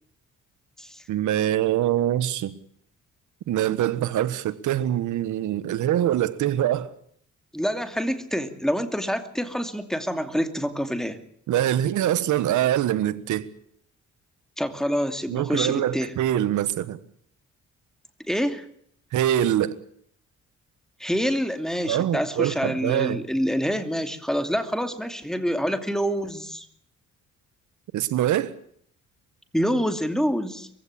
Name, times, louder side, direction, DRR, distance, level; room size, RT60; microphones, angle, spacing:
voice 1, 1.1-2.6 3.5-6.9 11.5-13.5 15.3-17.0 19.1-19.8 21.9-23.3 27.9-28.5, right 12 dB, 80° right, 1.5 m, -24 dB
voice 2, 7.5-11.2 14.6-16.1 18.3-18.6 21.0-26.7 29.5-30.7, equal, ahead, 2.7 m, -26 dB
22.5 x 16.0 x 8.8 m
cardioid pair, 90°, 30 cm